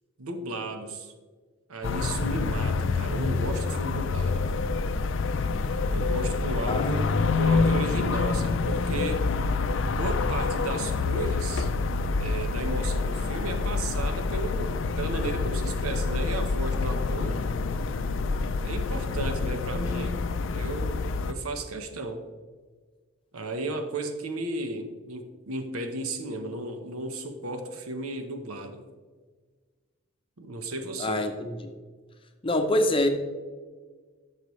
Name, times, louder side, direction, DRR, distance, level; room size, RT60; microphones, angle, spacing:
voice 1, 0.2-1.1 1.7-4.5 5.9-9.3 9.8-11.7 12.2-17.5 18.6-20.2 20.5-22.2 23.3-28.8 30.4-31.2, right 2 dB, 85° right, 7 dB, 1.0 m, -34 dB
sound 1, 1.8-21.3, left 4 dB, 60° left, 0.4 m, -27 dB
voice 2, 31.0-31.7 32.4-33.1, left 1 dB, 25° left, 6 dB, 0.7 m, -25 dB
11.5 x 6.8 x 3.1 m, 1.5 s
head